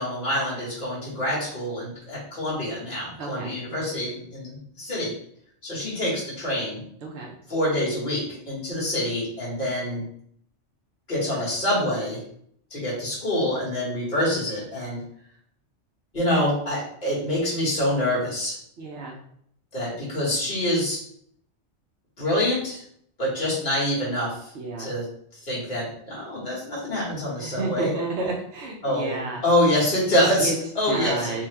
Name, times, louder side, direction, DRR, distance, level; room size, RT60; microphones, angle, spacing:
voice 1, 0.0-5.1 5.6-6.8 7.5-10.0 11.1-12.2 12.7-15.0 16.1-18.6 19.7-21.0 22.2-22.8 23.2-24.5 24.8-25.1 25.4-28.0 28.8-29.1 29.4-31.5, left 1 dB, 45° left, -7 dB, 2.1 m, -26 dB
voice 2, 3.2-3.6 7.0-7.3 18.8-19.2 24.5-24.9 27.4-29.4 30.4-30.5 30.9-31.5, right 3 dB, 60° right, -2 dB, 1.0 m, -31 dB
3.7 x 3.2 x 3.3 m, 0.66 s
omnidirectional pair, 1.2 m